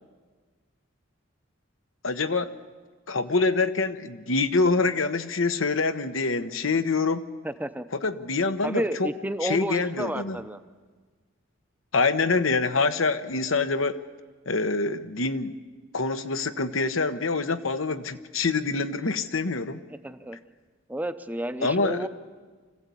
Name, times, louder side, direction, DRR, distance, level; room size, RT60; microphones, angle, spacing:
voice 1, 2.0-2.5 3.1-7.2 7.9-9.1 9.4-10.4 11.9-14.0 14.5-15.6 15.9-19.8 21.6-22.1, left 3 dB, 80° left, 9 dB, 1.1 m, -25 dB
voice 2, 7.4-7.9 8.6-10.6 19.9-20.4 20.9-22.1, right 1 dB, 10° right, 10 dB, 0.6 m, -31 dB
25.5 x 15.5 x 8.4 m, 1.4 s
head